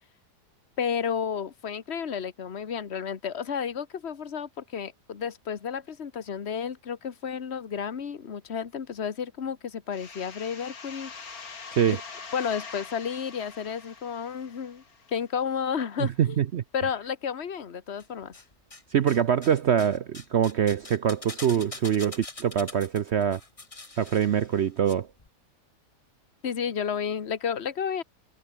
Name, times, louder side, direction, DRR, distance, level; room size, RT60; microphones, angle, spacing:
voice 1, 0.8-11.3 11.9-12.0 12.3-14.8 15.1-16.4 16.7-18.3 26.4-28.0, left 7 dB, 40° left, 1.5 m, -32 dB
sound 1, 9.9-15.4, left 5 dB, 60° left, 2.7 m, -44 dB
voice 2, 16.0-16.6 18.9-23.4 24.0-25.1, right 9 dB, 60° right, 0.7 m, -24 dB
sound 2, 18.0-18.8 19.1-24.9 25.2-25.3, left 2 dB, 20° left, 1.8 m, -44 dB
omnidirectional pair, 1.7 m